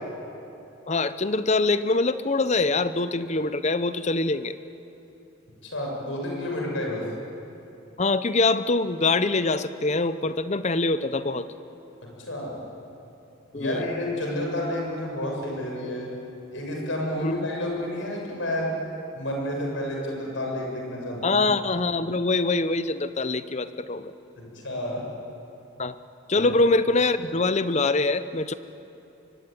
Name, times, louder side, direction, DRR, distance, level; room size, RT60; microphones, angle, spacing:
voice 1, 0.9-4.5 8.0-11.5 13.5-13.8 17.2-17.4 21.2-24.1 25.8-25.9 26.3-28.5, left 3 dB, 35° left, 13 dB, 0.8 m, -24 dB
voice 2, 5.6-7.1 12.0-12.6 13.5-16.1 16.5-18.7 19.1-21.4 24.4-25.0 26.3-26.5, left 1 dB, 65° left, -1 dB, 7.2 m, -30 dB
24.0 x 23.5 x 9.3 m, 2.9 s
head